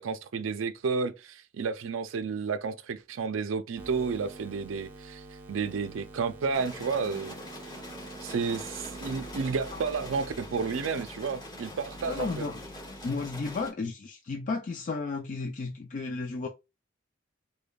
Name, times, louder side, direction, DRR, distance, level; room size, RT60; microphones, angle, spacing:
voice 1, 0.0-5.2 5.5-7.4 8.2-12.5, right 5 dB, 85° right, 0.4 m, -31 dB
sound 1, 3.8-13.7, right 2 dB, 10° right, 0.7 m, -47 dB
sound 2, 6.5-13.7, left 1 dB, 25° left, 2.0 m, -44 dB
voice 2, 12.1-12.6 13.0-16.5, left 4 dB, 40° left, 0.4 m, -33 dB
5.0 x 2.2 x 2.3 m
head